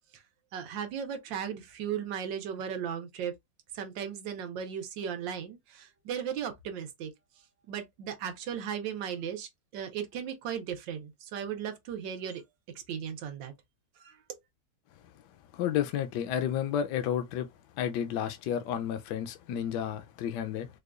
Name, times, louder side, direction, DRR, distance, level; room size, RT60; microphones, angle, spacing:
voice 1, 0.5-3.3 3.7-7.1 7.7-12.4 12.9-13.5 14.0-14.2, right 8 dB, 90° right, 1.5 m, -36 dB
voice 2, 15.5-17.5 17.8-20.7, left 9 dB, 75° left, 1.1 m, -31 dB
4.7 x 2.2 x 2.4 m
omnidirectional pair, 2.0 m